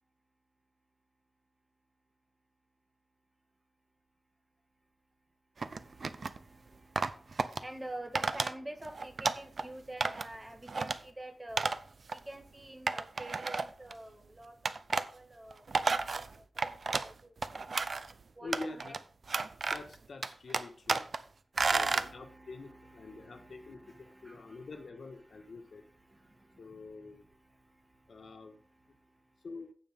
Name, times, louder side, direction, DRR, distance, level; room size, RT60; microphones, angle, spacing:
sound 1, 5.6-6.4 6.9-7.6 8.1-8.5 8.8-9.6 10.0-10.3 10.7-11.0 11.6-11.8 12.1-12.2 12.9-13.9 14.6-15.1 15.5-17.1 17.4-18.1 18.5-19.0 19.3-19.9 20.2-21.2 21.6-22.1, right 4 dB, 65° right, 0.6 m, -32 dB
voice 1, 5.7-11.8 12.1-14.7 15.1-17.6 18.3-19.0 21.7-29.4, right 1 dB, 20° right, 6 dB, 1.6 m, -49 dB
voice 2, 18.4-19.0 19.6-21.1 21.6-25.8 26.6-27.3 28.1-28.6 29.4-29.7, left 3 dB, 85° left, 5 dB, 1.6 m, -46 dB
16.0 x 5.5 x 3.7 m, 0.43 s
wide cardioid pair, 115°, 0 cm